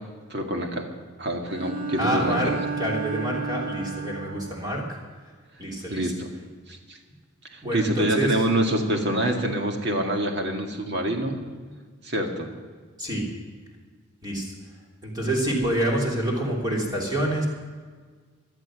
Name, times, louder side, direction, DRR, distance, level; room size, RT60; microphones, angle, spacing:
voice 1, 0.3-0.9 1.2-2.5 5.9-6.3 6.7-7.0 7.5-11.4 12.0-12.5, right 1 dB, 50° right, 3 dB, 2.1 m, -26 dB
Bowed string instrument, 1.5-4.6, right 4 dB, 80° right, 2.0 m, -32 dB
voice 2, 2.0-5.0 5.6-6.1 7.6-8.4 13.0-13.2 14.2-14.5 15.0-17.5, right 1 dB, 20° right, -2 dB, 3.2 m, -27 dB
17.5 x 12.0 x 6.3 m, 1.5 s
head